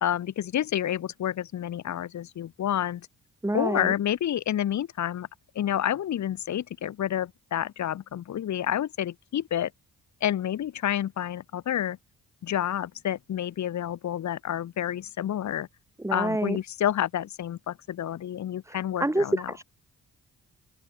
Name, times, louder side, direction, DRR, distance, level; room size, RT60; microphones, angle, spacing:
voice 1, 0.0-3.1 3.5-5.3 5.5-9.7 10.2-12.0 12.4-15.7 16.1-19.5, left 11 dB, 60° left, 0.9 m, -29 dB
voice 2, 3.4-3.9 16.0-16.6 18.7-19.6, right 1 dB, 10° right, 1.7 m, -28 dB
open air
cardioid pair, 70°, 31 cm